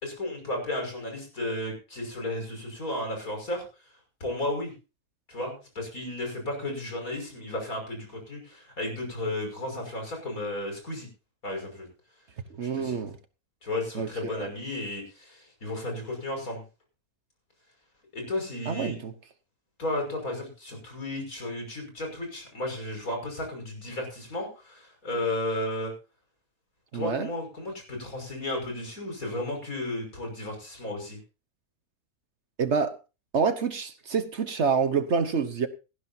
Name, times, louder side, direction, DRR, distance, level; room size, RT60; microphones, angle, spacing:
voice 1, 0.0-3.6 4.2-4.7 5.3-11.1 11.4-11.9 12.6-13.0 13.6-16.6 18.1-19.0 19.8-25.9 26.9-31.2, left 1 dB, 75° left, 6.3 m, -33 dB
voice 2, 12.6-13.2 13.9-14.1 14.3-14.5 18.7-19.1 26.9-27.3 32.6-32.9 33.3-35.7, right 5 dB, 55° right, 1.3 m, -27 dB
18.0 x 14.5 x 2.8 m
omnidirectional pair, 1.5 m